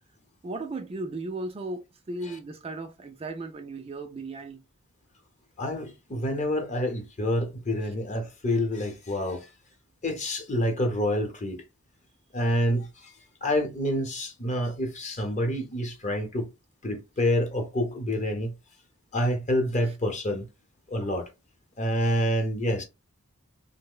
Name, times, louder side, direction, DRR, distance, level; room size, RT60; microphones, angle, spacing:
voice 1, 0.4-4.6 7.8-7.9 19.9-20.0, right 2 dB, 25° right, 0.3 m, -36 dB
voice 2, 5.6-9.5 10.0-11.6 12.3-13.1 13.4-16.5 16.8-18.5 19.1-20.5 20.9-21.3 21.8-22.8, equal, 35° left, 0.8 m, -27 dB
3.2 x 2.1 x 3.7 m
head